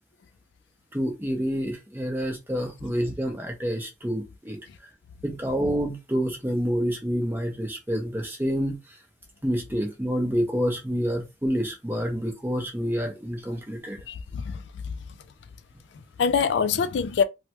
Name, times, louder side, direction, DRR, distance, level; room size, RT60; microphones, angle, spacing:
voice 1, 0.9-4.6 5.2-8.8 9.4-14.0, equal, 10° right, 0.7 m, -28 dB
voice 2, 14.1-14.9 15.9-17.2, left 6 dB, 65° left, 0.3 m, -25 dB
3.2 x 2.2 x 2.9 m
head